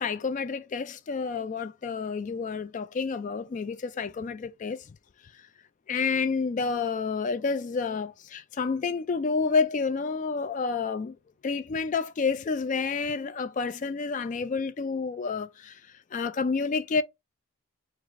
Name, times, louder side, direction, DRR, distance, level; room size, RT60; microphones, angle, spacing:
voice 1, 0.0-5.0 5.9-11.2 11.4-15.8 16.1-17.0, left 5 dB, 35° left, 0.3 m, -29 dB
4.7 x 2.4 x 3.6 m
head